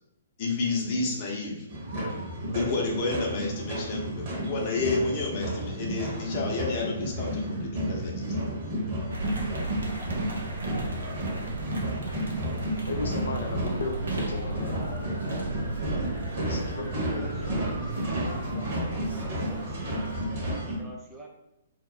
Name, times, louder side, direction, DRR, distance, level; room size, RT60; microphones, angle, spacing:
voice 1, 0.4-1.7 2.5-8.3, left 3 dB, 40° left, -2 dB, 0.8 m, -30 dB
sound 1, 1.7-20.8, right 1 dB, 45° right, 1.3 m, -32 dB
sound 2, 9.1-20.2, right 2 dB, 70° right, 0.6 m, -36 dB
voice 2, 12.8-15.0 15.3-15.5 16.4-17.5, left 3 dB, 65° left, 3 dB, 0.4 m, -35 dB
voice 3, 16.9-17.7 18.4-18.5 18.9-19.9 20.6-21.3, right 1 dB, 10° right, -1 dB, 0.5 m, -46 dB
2.9 x 2.0 x 4.0 m, 0.87 s
figure-of-eight pair, 120°, 0 cm